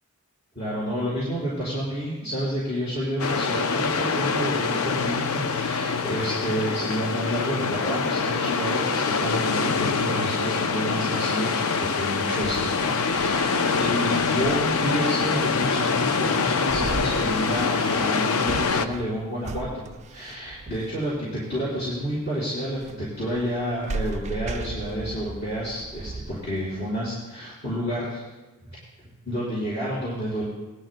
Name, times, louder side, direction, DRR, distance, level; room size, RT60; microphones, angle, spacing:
voice 1, 0.5-19.8 20.1-28.2 29.0-30.4, equal, 50° left, -11 dB, 4.7 m, -30 dB
sound 1, 3.2-18.9, left 5 dB, 70° left, 0.6 m, -25 dB
sound 2, 12.4-26.8, right 3 dB, 30° right, 0.4 m, -38 dB
20.0 x 13.0 x 2.2 m, 1.1 s
head